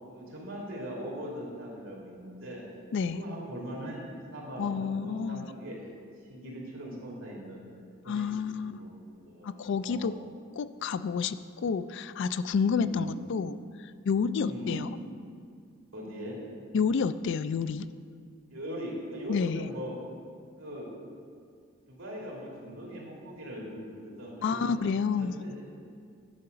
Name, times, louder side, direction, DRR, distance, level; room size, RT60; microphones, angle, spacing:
voice 1, 0.1-2.7 3.1-5.9 6.2-7.7 8.0-10.2 12.8-13.1 14.4-14.9 15.9-16.4 18.5-19.9 20.6-20.9 21.9-24.7 25.2-25.6, equal, 75° right, -3 dB, 2.7 m, -40 dB
voice 2, 2.9-3.2 4.6-5.5 8.1-8.7 9.4-10.1 10.6-13.6 14.1-14.9 16.7-17.9 19.3-19.7 24.4-25.4, left 5 dB, 60° left, 14 dB, 0.3 m, -29 dB
10.5 x 4.9 x 6.7 m, 2.2 s
head